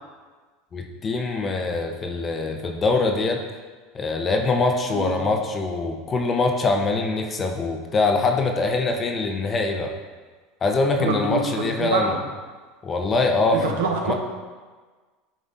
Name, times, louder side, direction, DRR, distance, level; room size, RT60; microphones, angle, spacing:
voice 1, 0.7-3.5 3.9-10.0 10.6-12.2 12.8-13.8 14.0-14.1, left 3 dB, 30° left, 3 dB, 0.9 m, -23 dB
voice 2, 4.9-5.3 11.0-12.2 13.5-14.1, right 4 dB, 85° right, 2 dB, 0.9 m, -26 dB
11.0 x 3.8 x 2.7 m, 1.4 s
supercardioid pair, 100°, 0 cm